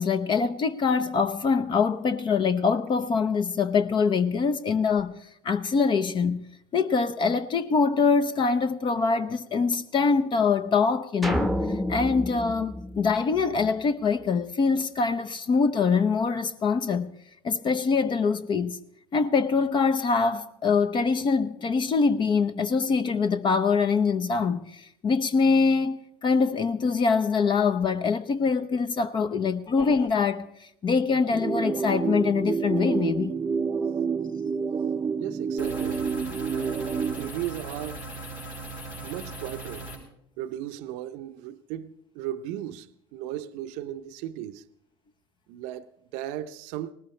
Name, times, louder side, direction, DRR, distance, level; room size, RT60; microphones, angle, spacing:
voice 1, 0.0-5.2 5.4-6.4 6.7-11.5 11.9-17.1 17.4-18.8 19.1-30.5 30.8-33.4, left 5 dB, 40° left, 0.8 m, -24 dB
sound 1, 11.2-13.8, equal, ahead, 1.0 m, -30 dB
sound 2, 31.3-37.3, right 6 dB, 25° right, 0.5 m, -28 dB
voice 2, 35.2-36.1 36.5-38.1 39.0-39.9 40.4-44.6 45.5-46.9, right 12 dB, 65° right, 0.7 m, -36 dB
sound 3, 35.6-40.0, right 2 dB, 75° left, 6.4 m, -39 dB
19.0 x 19.0 x 3.2 m
hypercardioid pair, 65°, 13 cm